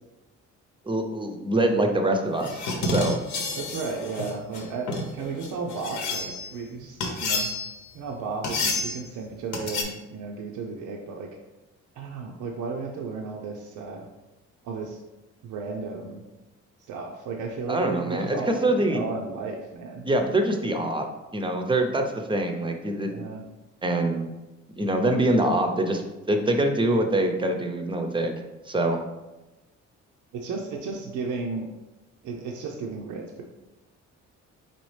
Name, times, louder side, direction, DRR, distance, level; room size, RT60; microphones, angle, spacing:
voice 1, 0.9-3.2 17.7-19.0 20.0-21.0 21.3-23.2 23.8-24.3 24.8-26.0 26.3-28.3 28.7-29.0, right 1 dB, 15° right, 5 dB, 0.6 m, -24 dB
sound 1, 2.4-6.5 7.0-7.9 8.4-9.0 9.5-9.8, left 2 dB, 75° left, 0.9 m, -29 dB
voice 2, 3.6-7.5 7.9-11.3 12.0-14.1 14.6-15.0 15.4-16.2 16.9-20.1 23.0-23.4 30.3-31.7 32.2-33.4, right 4 dB, 80° right, 1 dB, 0.6 m, -34 dB
4.2 x 3.9 x 3.2 m, 1.1 s
cardioid pair, 90°, 30 cm